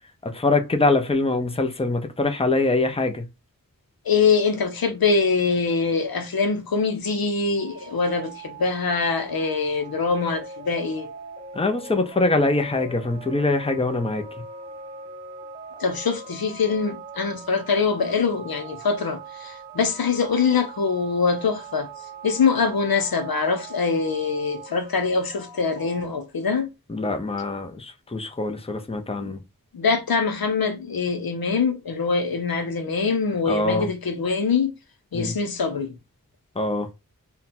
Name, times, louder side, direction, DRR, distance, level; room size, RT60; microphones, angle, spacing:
voice 1, 0.2-3.2 11.5-14.2 26.9-29.4 33.5-33.9 35.1-35.3 36.6-36.9, left 2 dB, 15° left, 0.6 m, -23 dB
voice 2, 4.1-11.1 15.8-21.9 22.2-26.7 29.2-29.4 29.7-34.7 35.1-35.9, left 5 dB, 85° left, 0.7 m, -23 dB
sound 1, 7.6-26.1, right 4 dB, 15° right, 1.1 m, -41 dB
3.7 x 2.3 x 4.2 m
wide cardioid pair, 55°, 35 cm